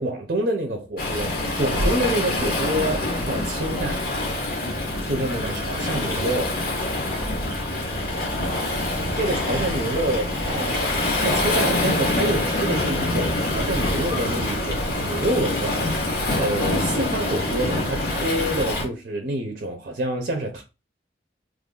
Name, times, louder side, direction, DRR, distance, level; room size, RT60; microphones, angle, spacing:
voice 1, 0.0-4.1 5.1-6.6 9.2-10.9 11.2-20.6, right 1 dB, 55° right, 0.6 m, -27 dB
Waves surf, 1.0-18.8, left 1 dB, 55° left, 1.3 m, -25 dB
3.0 x 2.6 x 3.7 m
head